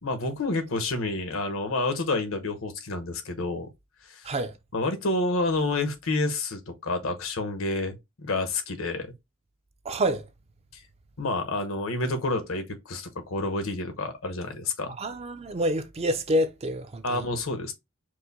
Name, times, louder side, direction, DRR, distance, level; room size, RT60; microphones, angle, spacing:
voice 1, 0.0-3.7 4.1-4.3 4.7-9.1 11.2-14.9 17.0-17.7, left 2 dB, 80° left, 1.0 m, -29 dB
voice 2, 9.9-10.2 15.0-17.0, equal, 30° right, 0.5 m, -27 dB
4.7 x 2.1 x 4.0 m
head